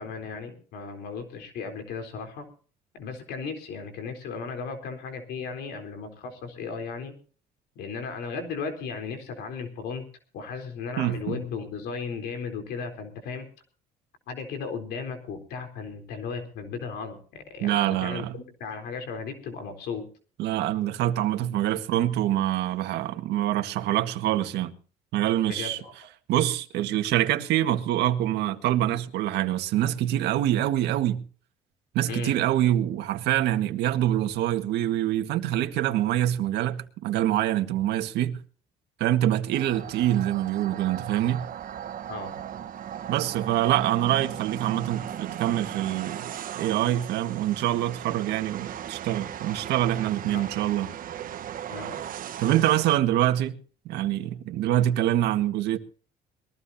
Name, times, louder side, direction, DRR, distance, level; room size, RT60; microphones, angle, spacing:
voice 1, 0.0-2.5 2.9-7.1 7.8-10.0 10.3-13.5 14.3-20.1 25.5-25.9 32.1-32.4 42.1-42.5 50.3-50.5 51.7-52.0, left 5 dB, 75° left, 4.0 m, -36 dB
voice 2, 11.0-11.4 17.6-18.4 20.4-24.7 25.1-25.8 26.3-31.2 31.9-38.4 39.0-41.5 43.1-46.3 46.5-50.9 52.4-53.5 53.9-55.8, right 12 dB, 80° right, 1.8 m, -25 dB
sound 1, 39.5-53.0, right 10 dB, 55° right, 1.2 m, -37 dB
22.0 x 15.0 x 2.8 m
cardioid pair, 110°, 17 cm